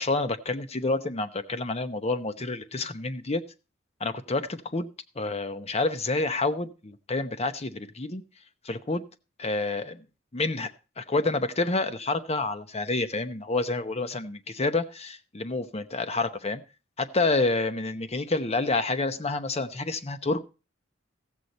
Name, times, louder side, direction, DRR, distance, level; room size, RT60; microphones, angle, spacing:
voice 1, 0.0-3.4 4.0-4.9 5.2-8.2 8.6-9.0 9.4-10.0 10.3-10.7 11.0-16.6 17.0-20.4, left 3 dB, 35° left, 10 dB, 0.9 m, -28 dB
15.0 x 8.0 x 4.2 m, 0.32 s
head